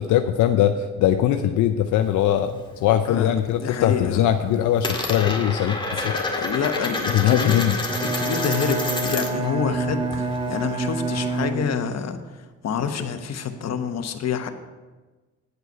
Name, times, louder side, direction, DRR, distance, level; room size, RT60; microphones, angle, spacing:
voice 1, 0.0-5.8 6.0-6.1 7.1-7.8, left 11 dB, 85° left, 7 dB, 0.6 m, -21 dB
Coin (dropping), 2.0-3.1 3.4-3.9 4.2-9.5 9.8-11.5, left 2 dB, 15° left, 1.9 m, -29 dB
voice 2, 3.1-4.2 6.0-7.6 8.1-12.2 12.6-14.5, left 7 dB, 60° left, 7 dB, 1.1 m, -27 dB
Bowed string instrument, 7.8-12.1, right 2 dB, 20° right, 1.3 m, -27 dB
9.4 x 8.0 x 5.5 m, 1.3 s
cardioid pair, 90°, 30 cm